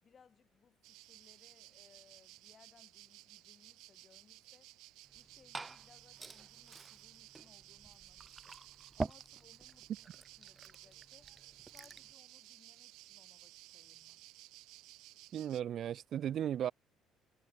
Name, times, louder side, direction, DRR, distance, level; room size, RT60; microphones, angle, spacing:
voice 1, 0.0-4.7 5.1-8.6 8.9-11.3 11.7-14.2, left 6 dB, 30° left, 5.2 m, -67 dB
sound 1, 0.8-15.6, right 19 dB, 80° right, 2.6 m, -57 dB
Liquid, 5.0-12.1, right 3 dB, 15° right, 2.3 m, -47 dB
voice 2, 15.3-16.7, right 10 dB, 45° right, 0.5 m, -36 dB
cardioid pair, 145°, 0 cm